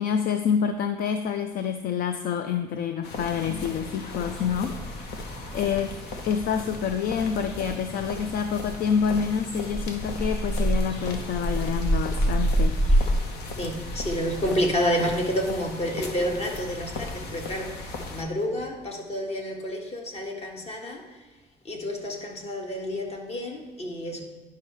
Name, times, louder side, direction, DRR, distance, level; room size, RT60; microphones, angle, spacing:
voice 1, 0.0-5.1 5.5-6.0 6.2-12.8, left 7 dB, 60° left, 0.5 m, -27 dB
sound 1, 3.0-18.2, left 3 dB, 75° left, 1.0 m, -38 dB
sound 2, 4.2-14.7, right 1 dB, 5° left, 1.0 m, -29 dB
voice 2, 13.6-21.2 21.6-24.2, equal, 40° left, 1.6 m, -29 dB
10.5 x 5.6 x 3.1 m
cardioid pair, 110°, 17 cm